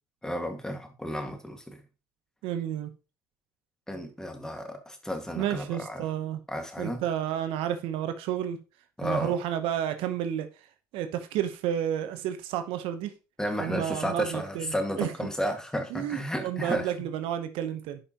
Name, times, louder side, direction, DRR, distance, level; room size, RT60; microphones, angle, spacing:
voice 1, 0.2-1.8 3.9-6.1 6.5-7.0 9.0-9.3 13.4-16.9, equal, 5° left, 1.8 m, -33 dB
voice 2, 2.4-2.9 5.4-6.4 6.8-8.6 9.0-10.5 10.9-13.1 13.6-15.1 15.9-18.0, right 10 dB, 70° right, 0.9 m, -31 dB
11.0 x 5.3 x 2.9 m
supercardioid pair, 85°, 9 cm